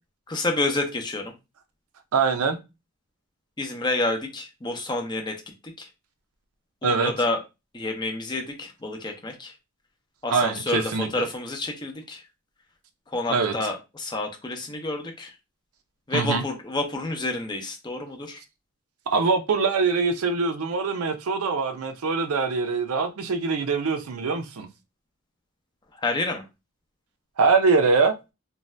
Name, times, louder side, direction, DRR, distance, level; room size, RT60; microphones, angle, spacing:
voice 1, 0.3-1.3 3.6-5.4 5.8-5.9 6.8-7.4 7.7-9.5 10.2-12.2 13.1-15.3 16.1-18.4 26.0-26.4, left 2 dB, 20° left, 0.5 m, -29 dB
voice 2, 2.1-2.6 6.8-7.1 10.3-11.3 13.3-13.5 16.1-16.4 19.1-24.7 27.4-28.1, right 4 dB, 85° right, 0.5 m, -23 dB
2.6 x 2.2 x 3.2 m
head